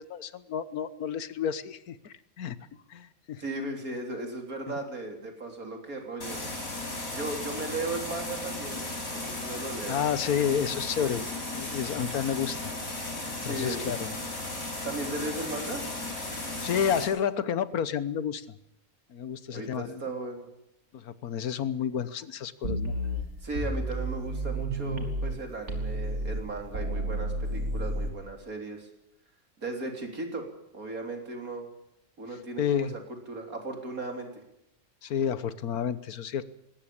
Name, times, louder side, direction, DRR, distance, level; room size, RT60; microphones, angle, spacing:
voice 1, 0.0-2.6 2.9-3.4 4.7-4.8 9.5-9.6 9.9-11.2 11.5-12.6 13.3-14.1 16.3-18.5 19.1-20.3 20.9-22.9 32.6-32.9 35.0-36.4, left 8 dB, 85° left, 15 dB, 1.5 m, -30 dB
voice 2, 3.4-6.4 7.1-10.0 11.0-11.1 13.4-14.1 14.8-15.8 19.5-20.5 23.4-28.9 29.6-30.5 30.7-31.7 32.2-33.0 33.3-34.4, right 2 dB, 75° right, 3 dB, 4.1 m, -36 dB
sound 1, 6.2-17.1, left 2 dB, 70° left, 6.3 m, -35 dB
sound 2, 22.6-25.4 25.7-28.1, right 1 dB, 55° right, 3.0 m, -31 dB
20.5 x 18.0 x 8.7 m, 0.81 s
omnidirectional pair, 1.5 m